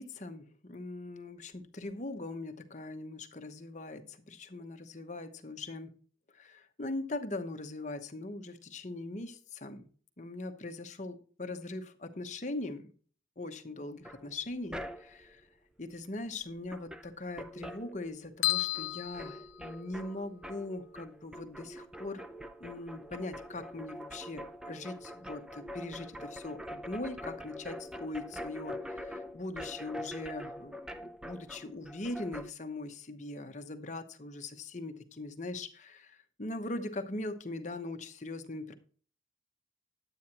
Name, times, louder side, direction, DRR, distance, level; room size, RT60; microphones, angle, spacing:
voice 1, 0.0-5.9 6.3-9.9 10.2-12.9 13.4-15.4 15.8-22.2 22.6-38.7, left 2 dB, 40° left, 7 dB, 0.9 m, -41 dB
sound 1, 14.0-15.3 16.3-16.4 16.7-18.5 18.7-32.5, equal, 5° right, 0.4 m, -44 dB
sound 2, 18.4-20.2, left 19 dB, 90° left, 0.3 m, -33 dB
9.8 x 9.1 x 2.9 m, 0.43 s
head